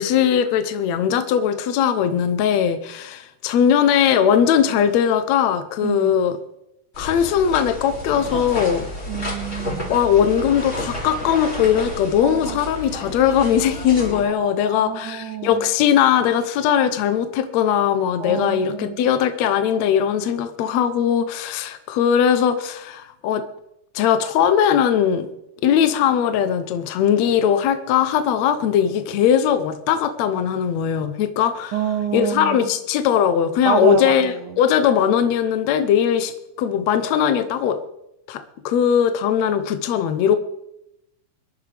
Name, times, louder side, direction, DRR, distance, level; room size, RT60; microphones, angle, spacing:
voice 1, 0.0-6.4 7.0-8.9 9.9-23.4 23.9-25.3 25.6-31.8 32.1-36.3 36.6-37.8 38.3-40.4, left 8 dB, 75° left, 9 dB, 1.6 m, -19 dB
voice 2, 5.8-6.2 8.3-8.5 9.1-9.9 12.2-12.6 14.2-15.6 18.2-19.1 31.7-32.6 33.7-34.6, right 8 dB, 75° right, 4 dB, 2.3 m, -27 dB
sound 1, 6.9-14.2, left 1 dB, 20° left, 2.8 m, -31 dB
25.0 x 10.5 x 3.4 m, 0.85 s
omnidirectional pair, 4.0 m